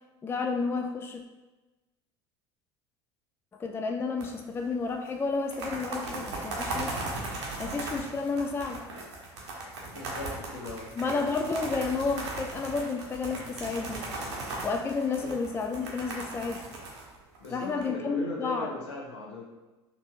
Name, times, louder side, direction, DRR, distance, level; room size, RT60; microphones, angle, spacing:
voice 1, 0.2-1.2 3.6-7.0 7.6-8.8 11.0-14.1 14.6-16.7 17.5-18.7, left 4 dB, 15° left, 4 dB, 0.4 m, -31 dB
sound 1, 4.2-4.6 4.9-5.0 5.3-17.8, right 2 dB, 75° right, 0.9 m, -37 dB
voice 2, 9.9-10.9 15.2-15.4 17.4-19.4, left 3 dB, 75° left, -3 dB, 0.9 m, -38 dB
4.4 x 3.0 x 2.8 m, 1.1 s
figure-of-eight pair, 65°, 15 cm